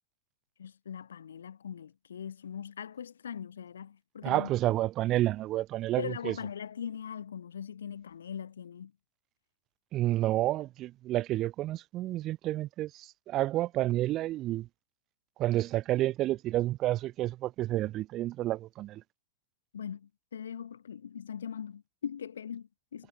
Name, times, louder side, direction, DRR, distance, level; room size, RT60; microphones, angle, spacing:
voice 1, 0.6-4.5 6.0-8.9 19.7-23.1, left 8 dB, 65° left, 7.8 m, -40 dB
voice 2, 4.2-6.3 9.9-14.7 15.4-19.0, right 15 dB, 35° right, 3.8 m, -30 dB
figure-of-eight pair, 90°, 0 cm